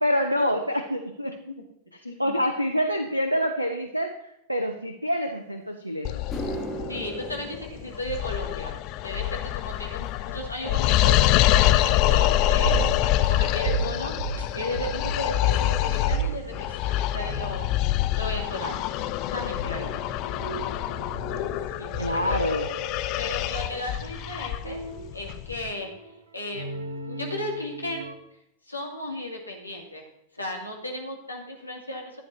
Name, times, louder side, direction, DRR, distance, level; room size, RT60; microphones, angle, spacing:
voice 1, 0.0-1.4 2.2-6.2 22.0-22.7, equal, 90° right, 5 dB, 0.9 m, -26 dB
voice 2, 2.0-2.4 6.9-8.7 9.0-16.5 16.9-17.7 18.2-18.9 19.3-19.9 21.8-21.9 22.2-22.4 23.2-24.8 25.1-25.9 26.3-28.1 28.7-30.1 30.3-32.2, left 1 dB, 85° left, 1 dB, 2.3 m, -35 dB
sound 1, 5.6-5.7 6.1-14.6 14.9-15.3 16.1-16.2 18.9-19.0 20.7-20.8 21.0-21.2 21.5-22.0 22.4-22.5 23.0-23.1, right 2 dB, 10° left, 3.2 m, -42 dB
sound 2, 6.0-25.7, left 15 dB, 40° left, 0.6 m, -26 dB
sound 3, 11.8-18.4 18.8-28.1, right 6 dB, 65° right, 1.8 m, -36 dB
14.5 x 8.8 x 4.2 m, 0.80 s
figure-of-eight pair, 90°, 0 cm